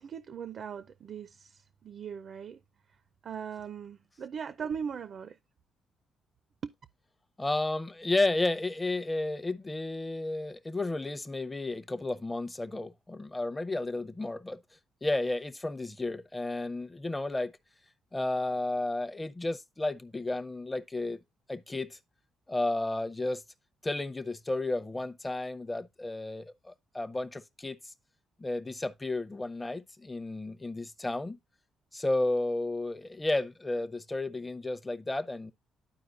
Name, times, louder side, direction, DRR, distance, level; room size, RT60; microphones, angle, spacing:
voice 1, 0.0-2.6 3.2-5.4 6.6-6.7, right 7 dB, 55° right, 0.4 m, -39 dB
voice 2, 7.4-14.6 15.0-17.5 18.1-21.2 21.5-22.0 22.5-23.4 23.8-27.9 28.4-31.4 31.9-35.5, left 2 dB, 15° left, 0.7 m, -32 dB
12.0 x 4.6 x 2.5 m
cardioid pair, 90°, 0 cm